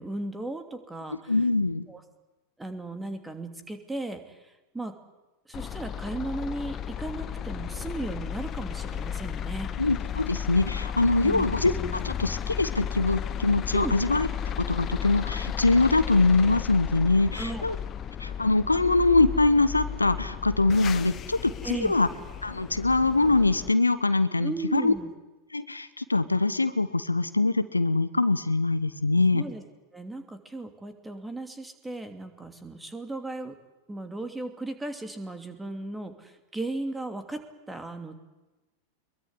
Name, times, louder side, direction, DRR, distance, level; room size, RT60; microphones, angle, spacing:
voice 1, 0.0-1.3 1.9-2.0 2.6-4.9 5.5-9.7 11.2-11.5 13.7-13.9 17.3-17.6 21.6-22.0 24.4-25.1 29.3-29.6 29.9-33.5 33.9-37.4 37.7-38.2, right 2 dB, 10° right, 8 dB, 2.8 m, -36 dB
voice 2, 1.3-1.8 9.8-14.3 14.6-17.7 18.2-22.1 22.4-24.9 25.5-29.4, left 3 dB, 80° left, 13 dB, 1.2 m, -23 dB
sound 1, 5.5-23.7, left 8 dB, 30° left, 1.1 m, -34 dB
23.0 x 22.5 x 9.8 m, 1.1 s
figure-of-eight pair, 90°, 0 cm